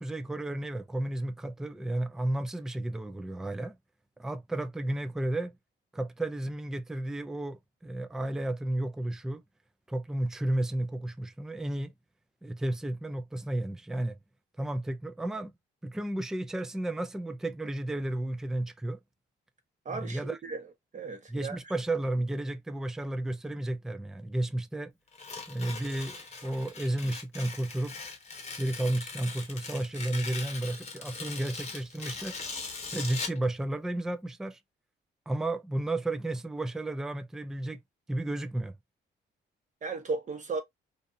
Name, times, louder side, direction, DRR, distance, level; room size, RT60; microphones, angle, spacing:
voice 1, 0.0-3.8 4.2-5.5 5.9-9.4 9.9-11.9 12.4-14.2 14.6-15.5 15.8-19.0 19.9-20.4 21.3-24.9 25.5-26.2 26.4-28.0 28.6-32.4 32.9-34.6 35.3-37.8 38.1-38.7, right 1 dB, 5° right, 0.3 m, -32 dB
voice 2, 19.8-20.6 20.9-21.6 39.8-40.6, right 4 dB, 40° right, 1.0 m, -35 dB
Tearing, 25.1-33.4, left 4 dB, 35° left, 0.9 m, -40 dB
2.6 x 2.4 x 2.5 m
cardioid pair, 90°, 20 cm